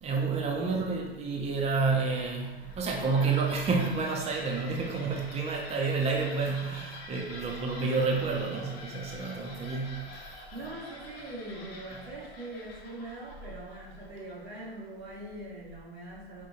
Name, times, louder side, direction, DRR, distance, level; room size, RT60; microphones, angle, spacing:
voice 1, 0.0-10.2, right 4 dB, 20° right, -1 dB, 0.7 m, -29 dB
sound 1, 2.5-14.9, left 2 dB, 75° left, 0.9 m, -47 dB
voice 2, 10.5-16.5, right 2 dB, 90° right, -5 dB, 1.2 m, -42 dB
5.1 x 2.7 x 2.7 m, 1.1 s
hypercardioid pair, 95°, 31 cm